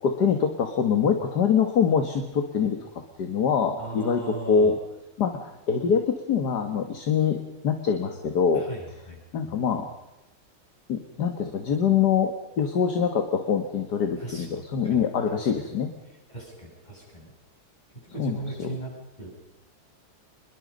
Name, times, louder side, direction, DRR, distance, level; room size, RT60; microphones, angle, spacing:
voice 1, 0.0-2.8 3.2-4.2 4.5-4.8 5.2-7.4 7.6-8.7 9.3-9.9 10.9-15.9 18.2-18.7, left 6 dB, 55° left, 7 dB, 2.0 m, -24 dB
voice 2, 3.8-4.8 8.5-9.5 14.2-14.5 14.8-15.5 16.0-17.3 17.9-19.5, right 2 dB, 20° left, -3 dB, 8.2 m, -39 dB
26.5 x 22.0 x 5.3 m, 0.98 s
omnidirectional pair, 2.2 m